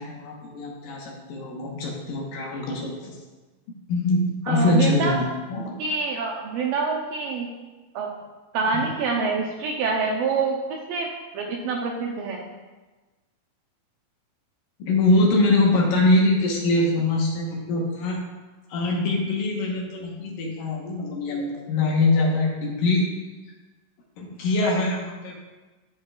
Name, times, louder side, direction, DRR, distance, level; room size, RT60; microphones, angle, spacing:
voice 1, 0.0-3.2 3.9-5.2 5.5-5.7 14.8-18.2 18.7-23.1 24.2-25.3, left 2 dB, 70° left, -2 dB, 2.7 m, -23 dB
voice 2, 4.5-5.2 5.8-7.5 7.9-8.1 8.5-12.4, right 4 dB, 75° right, 1 dB, 2.2 m, -26 dB
13.0 x 5.3 x 2.4 m, 1.2 s
omnidirectional pair, 4.4 m